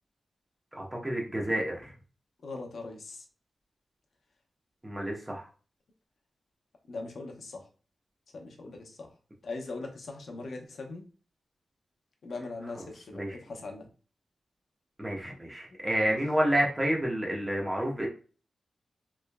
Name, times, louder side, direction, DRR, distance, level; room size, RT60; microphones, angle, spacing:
voice 1, 0.7-1.9 4.8-5.5 12.8-13.3 15.0-18.1, right 1 dB, 15° right, -1 dB, 1.0 m, -29 dB
voice 2, 2.4-3.2 6.9-7.6 8.3-9.1 9.4-11.0 12.2-13.9 15.7-15.8 16.1-16.2, left 3 dB, 65° left, 2 dB, 0.8 m, -40 dB
3.4 x 3.1 x 2.2 m, 0.37 s
wide cardioid pair, 120°, 0 cm